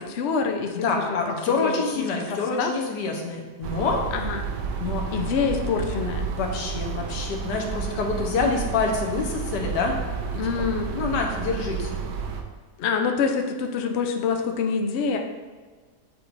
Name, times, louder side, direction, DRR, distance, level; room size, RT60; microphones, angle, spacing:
voice 1, 0.0-1.2 1.6-2.0 2.3-2.7 4.1-4.4 5.1-6.3 10.4-10.9 12.8-15.2, left 5 dB, 65° left, 4 dB, 0.6 m, -26 dB
voice 2, 0.7-4.0 4.8-5.1 6.4-10.0 10.6-10.7 10.9-12.0, left 4 dB, 90° left, 1 dB, 1.5 m, -26 dB
sound 1, 3.6-12.4, right 6 dB, 80° right, 1.3 m, -31 dB
8.3 x 4.6 x 2.6 m, 1.4 s
omnidirectional pair, 1.8 m